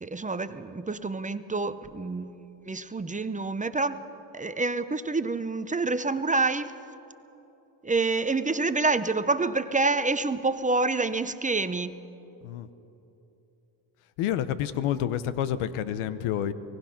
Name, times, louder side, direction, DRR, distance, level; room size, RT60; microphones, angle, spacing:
voice 1, 0.0-2.3 2.7-4.0 4.3-6.7 7.8-11.9, right 3 dB, 15° right, 12 dB, 0.7 m, -27 dB
voice 2, 14.2-16.5, left 10 dB, 85° left, 14 dB, 1.0 m, -28 dB
24.0 x 19.0 x 5.9 m, 3.0 s
cardioid pair, 85°, 48 cm